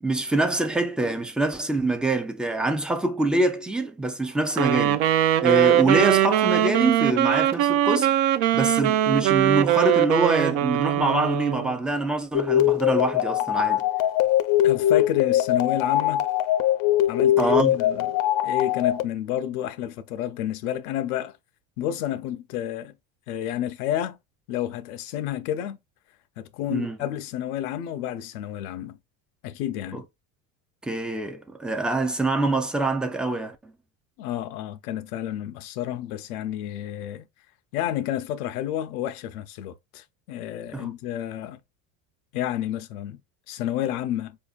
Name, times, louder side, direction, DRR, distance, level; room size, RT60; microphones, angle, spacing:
voice 1, 0.0-5.1 5.4-8.1 8.5-13.8 17.4-17.8 26.7-27.0 29.9-30.0 30.8-33.7 40.7-40.9, right 2 dB, ahead, 0.3 m, -25 dB
Wind instrument woodwind instrument, 4.5-11.7, right 12 dB, 65° right, 0.6 m, -21 dB
sound 1, 12.3-19.0, left 12 dB, 50° left, 0.5 m, -22 dB
voice 2, 14.6-16.3 17.1-18.1 18.4-21.3 21.8-22.9 23.3-24.2 24.5-25.8 26.4-29.0 29.4-30.0 34.2-37.3 37.7-41.6 42.3-43.2 43.5-44.4, left 11 dB, 85° left, 0.6 m, -30 dB
4.6 x 2.7 x 2.3 m
supercardioid pair, 110°, 43 cm